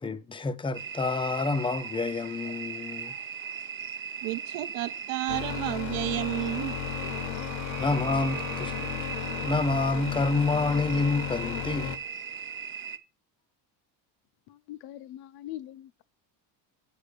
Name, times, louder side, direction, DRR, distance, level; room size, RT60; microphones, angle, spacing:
voice 1, 0.0-3.1 7.8-9.1 9.4-11.9, left 3 dB, 15° left, 0.3 m, -28 dB
sound 1, 0.7-13.0, right 6 dB, 30° right, 0.7 m, -38 dB
voice 2, 4.2-6.7, right 17 dB, 75° right, 0.6 m, -31 dB
sound 2, 5.3-12.0, left 10 dB, 85° left, 0.9 m, -35 dB
sound 3, 5.8-12.7, right 8 dB, 45° right, 1.2 m, -47 dB
voice 3, 14.5-16.0, left 13 dB, 65° left, 0.5 m, -42 dB
8.3 x 4.9 x 6.5 m
cardioid pair, 135°, 42 cm